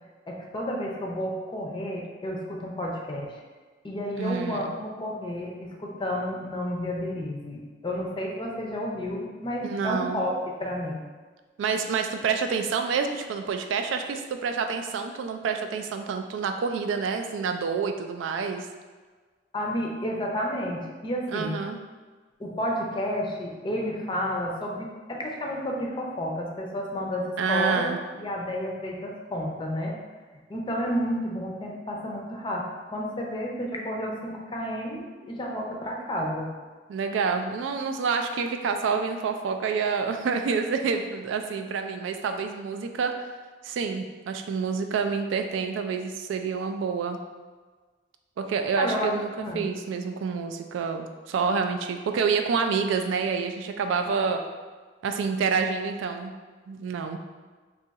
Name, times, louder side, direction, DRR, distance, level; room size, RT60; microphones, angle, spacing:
voice 1, 0.3-3.4 3.8-10.3 10.6-11.0 19.5-21.6 22.4-30.0 30.5-36.5 48.8-49.1 49.4-49.6 54.3-54.5, equal, 25° left, -1 dB, 0.5 m, -31 dB
voice 2, 4.2-4.6 9.6-10.2 11.6-18.7 21.3-21.8 27.4-28.0 36.9-43.2 43.6-47.2 48.4-49.3 49.5-54.4 55.0-56.3 56.7-57.2, right 5 dB, 80° right, 7 dB, 0.3 m, -28 dB
2.7 x 2.3 x 3.9 m, 1.4 s
head